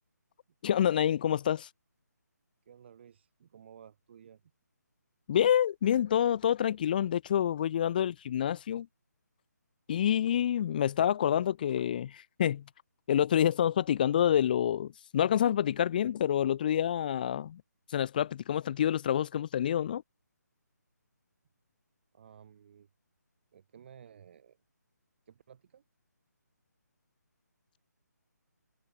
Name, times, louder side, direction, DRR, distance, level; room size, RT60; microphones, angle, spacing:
voice 1, 0.6-1.7 5.3-8.9 9.9-12.6 13.1-17.6 17.9-20.0, left 10 dB, 30° left, 0.9 m, -27 dB
voice 2, 2.7-4.4 22.1-22.9 23.5-24.6 25.3-25.8, right 8 dB, 35° right, 6.4 m, -55 dB
figure-of-eight pair, 150°, 10 cm